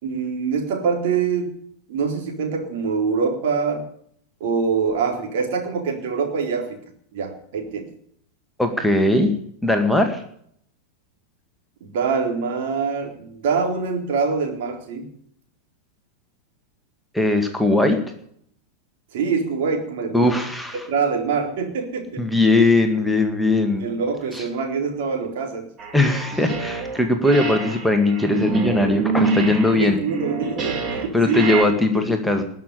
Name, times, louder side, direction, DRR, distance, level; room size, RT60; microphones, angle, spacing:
voice 1, 0.0-1.6 1.9-3.8 4.4-6.8 7.1-7.9 11.8-15.0 19.1-20.3 20.9-22.3 23.8-25.7 29.4-31.5 32.0-32.1, right 5 dB, 50° right, 3 dB, 3.9 m, -24 dB
voice 2, 8.6-9.3 9.6-10.2 17.1-18.0 20.1-20.8 22.2-23.9 24.3-24.5 25.9-30.0 31.1-32.4, left 2 dB, ahead, 5 dB, 2.0 m, -19 dB
sound 1, 25.8-27.0 27.2-31.6, right 4 dB, 25° right, 3.5 m, -27 dB
20.0 x 6.8 x 9.9 m, 0.65 s
figure-of-eight pair, 90°, 0 cm